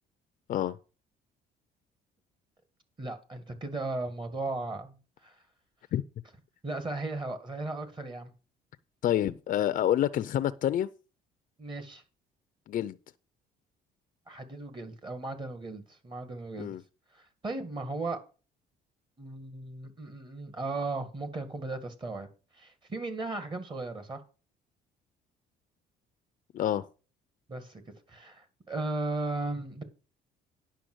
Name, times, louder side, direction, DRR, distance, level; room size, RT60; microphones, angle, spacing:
voice 1, 3.0-5.4 6.6-8.3 11.6-12.0 14.3-16.8 17.1-18.2 19.2-22.3 22.6-24.2 27.5-27.8 28.1-29.8, right 2 dB, 30° right, 1.9 m, -36 dB
voice 2, 9.0-10.9 12.7-13.0 16.6-16.8 26.5-26.9, left 11 dB, 50° left, 0.6 m, -28 dB
10.5 x 5.8 x 6.2 m
cardioid pair, 110°, 17 cm